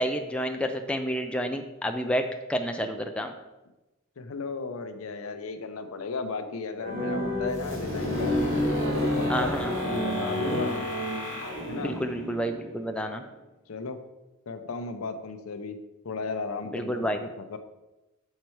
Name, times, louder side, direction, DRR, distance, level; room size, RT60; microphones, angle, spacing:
voice 1, 0.0-3.3 9.3-9.7 11.8-13.2 16.7-17.2, equal, 5° left, 5 dB, 0.3 m, -29 dB
voice 2, 4.2-8.3 8.9-10.9 11.6-12.0 13.7-14.0 14.5-15.8 16.0-17.6, left 4 dB, 80° left, 8 dB, 0.6 m, -35 dB
sound 1, 6.8-11.8, left 1 dB, 60° right, 2.3 m, -30 dB
sound 2, 7.5-13.2, equal, 80° right, 2.0 m, -33 dB
6.6 x 4.5 x 4.5 m, 1.0 s
head